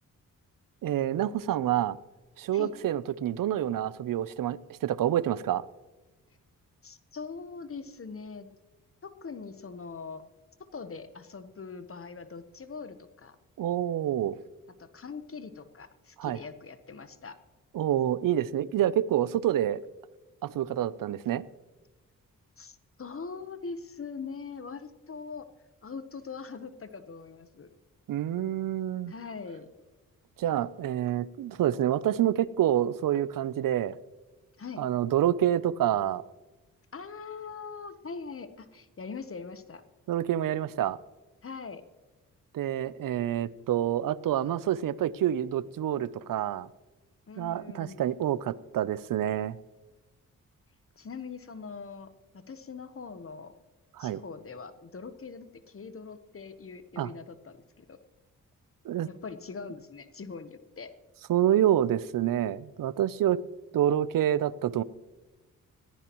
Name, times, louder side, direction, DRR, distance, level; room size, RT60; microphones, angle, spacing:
voice 1, 0.8-2.0 2.4-5.6 13.6-14.4 16.2-16.4 17.7-19.8 20.4-21.4 28.1-29.1 30.4-34.0 34.8-36.2 40.1-41.0 42.5-46.7 47.4-49.6 53.9-54.2 57.0-57.1 58.8-59.1 61.3-63.4 63.7-64.8, right 11 dB, 70° right, 18 dB, 0.6 m, -27 dB
voice 2, 6.8-8.5 9.0-10.2 10.7-13.4 14.8-17.4 22.6-25.5 25.8-27.7 29.1-29.7 34.6-34.8 36.9-39.8 41.4-41.8 47.3-48.1 51.0-53.5 54.0-58.0 59.1-60.9, left 5 dB, 40° left, 11 dB, 1.1 m, -42 dB
20.5 x 14.5 x 3.0 m, 1.2 s
cardioid pair, 65°, 34 cm